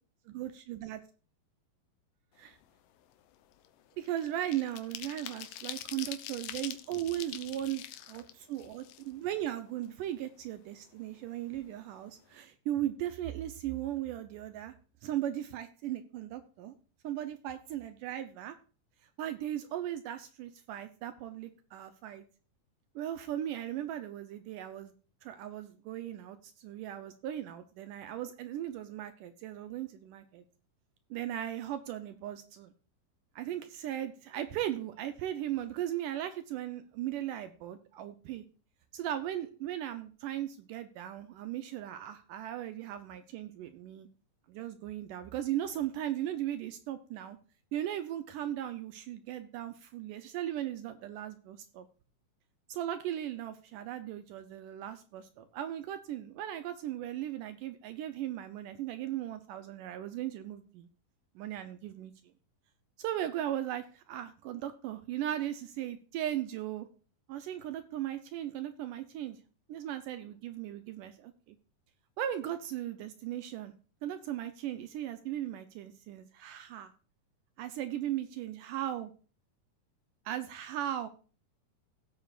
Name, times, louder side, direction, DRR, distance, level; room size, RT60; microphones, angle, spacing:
voice 1, 0.3-1.0 2.4-2.6 4.0-14.7 15.0-16.8 17.0-18.6 19.2-22.2 23.0-24.9 25.2-30.4 31.1-32.7 33.4-38.4 38.9-44.1 44.5-47.4 47.7-51.9 52.7-60.9 61.4-62.1 63.0-66.9 67.3-69.4 69.7-71.6 72.2-73.7 74.0-76.9 77.6-79.1 80.3-81.1, right 12 dB, 75° right, 10 dB, 2.0 m, -37 dB
sound 1, 2.5-2.7 3.0-9.5 9.8-9.9 10.2-11.2 11.5-11.7 12.0-12.3, left 12 dB, 75° left, 2.2 m, -45 dB
17.0 x 8.1 x 2.5 m, 0.37 s
omnidirectional pair, 4.3 m